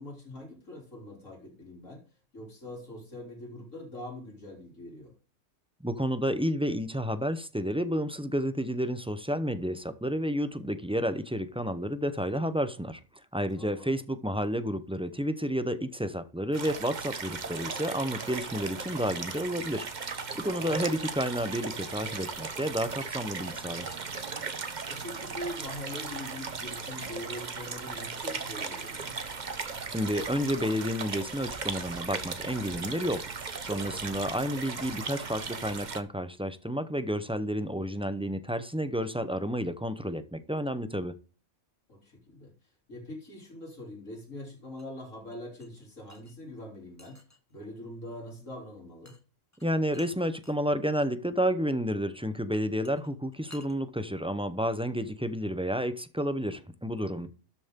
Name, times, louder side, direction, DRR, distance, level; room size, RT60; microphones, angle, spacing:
voice 1, 0.0-2.0 2.3-5.1 13.6-13.9 15.7-15.8 24.9-29.2 41.9-42.5 42.9-47.2 47.5-49.1 57.2-57.3, left 1 dB, 70° left, 3.7 m, -43 dB
voice 2, 5.8-13.0 13.3-19.9 20.3-23.9 29.9-33.3 33.6-41.2 49.6-57.3, equal, 5° right, 0.6 m, -31 dB
sound 1, 16.5-36.0, right 4 dB, 35° right, 1.1 m, -37 dB
sound 2, 44.8-46.3 47.0-47.5 49.0-49.2 49.5-50.6 52.5-53.7, left 2 dB, 15° left, 1.1 m, -54 dB
12.5 x 7.1 x 3.7 m
omnidirectional pair, 1.4 m